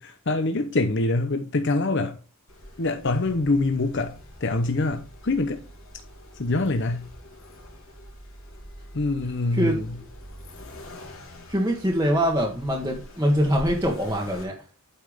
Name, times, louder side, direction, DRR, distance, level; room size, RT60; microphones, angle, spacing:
voice 1, 0.0-2.2 2.8-5.6 6.3-7.1 8.9-9.9, left 2 dB, 55° left, 0.8 m, -25 dB
Accelerating revving vroom, 2.5-14.4, left 1 dB, 70° left, 2.8 m, -44 dB
voice 2, 11.5-14.6, equal, 15° right, 1.3 m, -23 dB
8.5 x 5.7 x 5.0 m
head